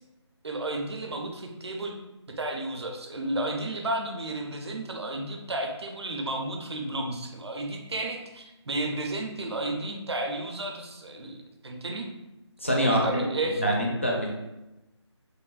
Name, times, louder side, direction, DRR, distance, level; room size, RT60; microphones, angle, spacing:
voice 1, 0.4-1.9 2.4-12.1 12.9-13.6, right 2 dB, 60° right, 2 dB, 0.5 m, -32 dB
voice 2, 12.6-13.0 13.6-14.3, equal, 25° left, -2 dB, 0.4 m, -24 dB
3.0 x 2.4 x 2.3 m, 0.97 s
figure-of-eight pair, 175°, 15 cm